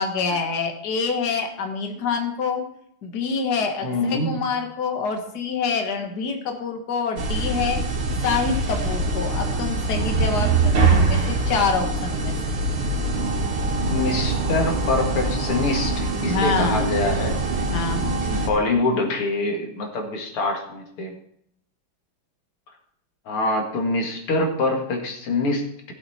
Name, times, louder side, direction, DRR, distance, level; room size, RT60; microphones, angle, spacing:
voice 1, 0.0-2.6 3.0-7.8 8.2-12.3 16.2-16.9 17.7-18.2, left 5 dB, 50° left, 4 dB, 2.0 m, -26 dB
voice 2, 3.8-4.4 13.9-17.4 18.3-21.2 23.3-25.6, left 2 dB, 80° left, 2 dB, 2.9 m, -25 dB
sound 1, 7.2-18.5, right 3 dB, 85° right, 2.6 m, -23 dB
15.5 x 7.4 x 4.3 m, 0.71 s
omnidirectional pair, 2.4 m